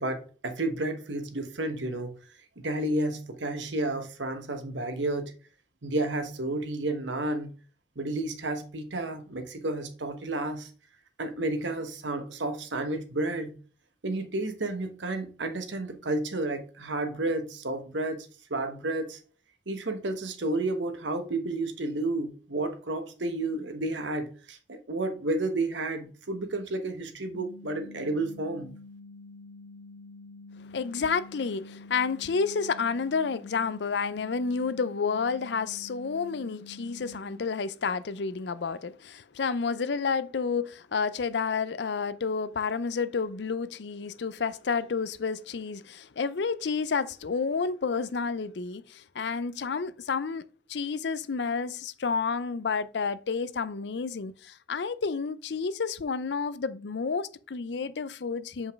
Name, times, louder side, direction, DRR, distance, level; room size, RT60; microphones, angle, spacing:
voice 1, 0.0-2.2 2.6-5.3 5.8-7.5 8.0-10.7 11.2-13.5 14.0-19.2 19.7-28.7, right 2 dB, 90° right, 1.2 m, -31 dB
sound 1, 27.3-37.3, left 3 dB, 90° left, 1.7 m, -48 dB
voice 2, 30.6-50.4 50.7-58.7, left 5 dB, 75° left, 0.5 m, -30 dB
7.2 x 5.3 x 3.5 m
head